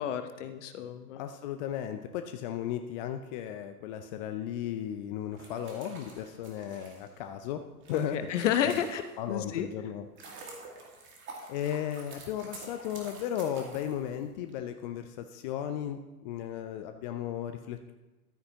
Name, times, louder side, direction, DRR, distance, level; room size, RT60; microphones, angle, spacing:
voice 1, 0.0-1.2 7.9-9.7, left 9 dB, 55° left, 9 dB, 1.0 m, -31 dB
voice 2, 1.1-8.3 9.2-10.0 11.5-17.9, left 10 dB, 30° left, 7 dB, 0.5 m, -35 dB
sound 1, 5.3-9.4 9.8-14.5, right 3 dB, 25° right, 2.0 m, -48 dB
12.5 x 9.4 x 2.9 m, 1.1 s
figure-of-eight pair, 100°, 45 cm